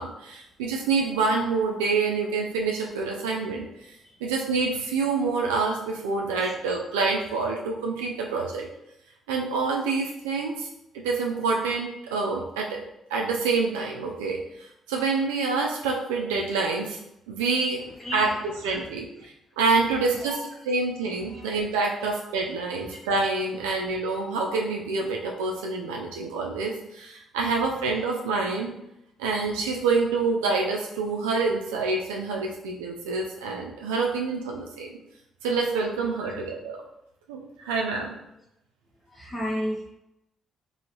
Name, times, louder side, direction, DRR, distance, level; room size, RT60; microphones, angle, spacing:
voice 1, 0.0-3.6 4.2-8.7 9.3-10.7 11.0-12.8 13.1-14.4 14.9-17.0 17.3-17.8 18.1-19.1 19.6-20.4 20.7-28.7 29.2-34.9 35.4-36.8 37.3-38.1, right 4 dB, 85° right, 0 dB, 0.4 m, -27 dB
voice 2, 18.0-18.4 20.2-20.4 21.3-21.5 36.2-36.3 39.1-39.8, equal, 30° left, -4 dB, 0.7 m, -32 dB
2.9 x 2.7 x 2.9 m, 0.86 s
hypercardioid pair, 45°, 0 cm